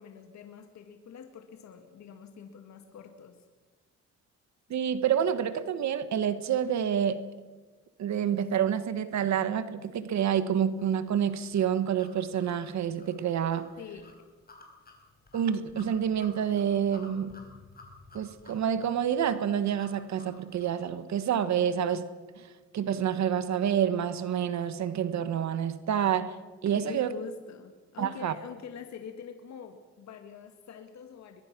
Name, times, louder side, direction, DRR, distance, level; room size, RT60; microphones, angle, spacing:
voice 1, 0.0-3.4 13.8-14.2 26.7-31.4, left 7 dB, 65° left, 6 dB, 2.0 m, -45 dB
voice 2, 4.7-7.2 8.0-13.7 15.3-17.4 18.1-22.1 22.4-26.4 26.6-27.1 28.0-28.3, right 9 dB, 65° right, 12 dB, 1.4 m, -28 dB
sound 1, 10.8-20.8, left 3 dB, 30° left, 4.7 m, -54 dB
22.0 x 22.0 x 6.1 m, 1.3 s
cardioid pair, 90°, 30 cm